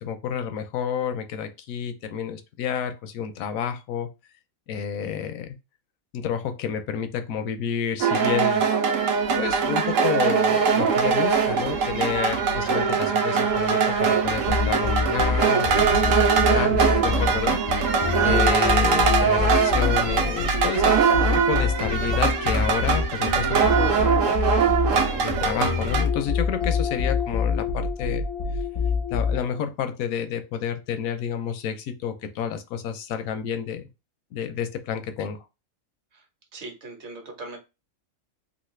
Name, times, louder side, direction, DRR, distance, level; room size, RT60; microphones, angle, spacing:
voice 1, 0.0-4.1 4.7-5.6 6.1-8.6 9.4-17.9 18.2-20.9 21.3-24.5 25.2-28.3 29.1-33.9 34.3-35.4, left 8 dB, 80° left, 8 dB, 1.0 m, -30 dB
sound 1, 8.0-26.1, right 6 dB, 70° right, 1.0 m, -22 dB
sound 2, 14.5-29.6, left 5 dB, 50° left, 0.3 m, -26 dB
voice 2, 36.5-37.6, right 2 dB, 55° right, 3 dB, 1.2 m, -39 dB
3.2 x 2.5 x 3.1 m, 0.27 s
omnidirectional pair, 1.5 m